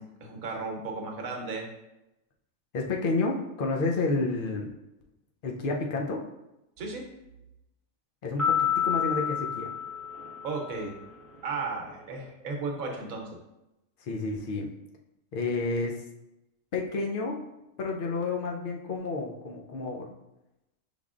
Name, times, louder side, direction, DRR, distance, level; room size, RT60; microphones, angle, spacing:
voice 1, 0.0-1.7 6.8-7.1 10.4-10.9 11.4-13.3, right 3 dB, 80° right, 1 dB, 1.2 m, -34 dB
voice 2, 2.7-4.7 5.4-6.2 8.2-9.7 14.0-14.7 15.3-16.0 16.7-17.4 17.8-20.1, left 3 dB, 55° left, 1 dB, 0.6 m, -30 dB
sound 1, 8.4-10.9, left 8 dB, ahead, 0.8 m, -29 dB
5.5 x 3.3 x 2.4 m, 0.93 s
omnidirectional pair, 1.4 m